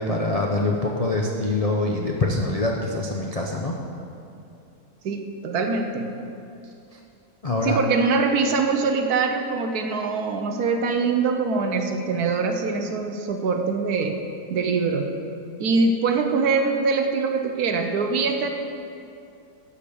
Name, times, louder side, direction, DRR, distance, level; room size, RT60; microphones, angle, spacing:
voice 1, 0.0-3.8 7.4-7.8, left 2 dB, 80° left, -1 dB, 0.3 m, -24 dB
voice 2, 5.0-6.1 7.6-14.2 14.5-15.1 15.6-18.5, right 4 dB, 65° right, 5 dB, 1.2 m, -23 dB
12.0 x 5.1 x 6.9 m, 2.6 s
omnidirectional pair, 1.8 m